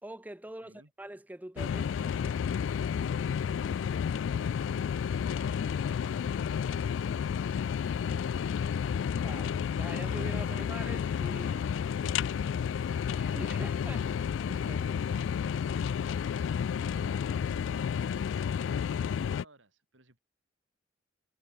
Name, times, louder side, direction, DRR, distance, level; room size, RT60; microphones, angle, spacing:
voice 1, 0.0-2.4 9.2-9.5 9.8-11.6 13.2-14.0 14.5-14.9, right 1 dB, 10° right, 0.7 m, -44 dB
voice 2, 0.6-0.9 5.5-7.5 10.4-14.3 14.8-20.2, right 1 dB, 75° right, 5.9 m, -59 dB
sound 1, 1.6-19.4, left 7 dB, 70° left, 0.3 m, -31 dB
head